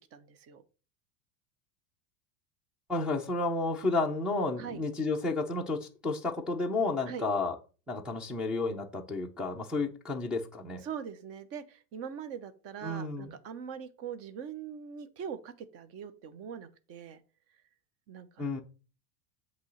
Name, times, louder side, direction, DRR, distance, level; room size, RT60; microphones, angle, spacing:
voice 1, 0.1-0.6 4.5-4.8 7.1-7.3 10.8-17.2 18.1-18.6, right 7 dB, 30° right, 0.7 m, -42 dB
voice 2, 2.9-7.6 7.9-10.8 12.8-13.3 18.4-18.6, left 3 dB, ahead, 0.5 m, -31 dB
8.1 x 3.1 x 6.2 m
supercardioid pair, 150°, 49 cm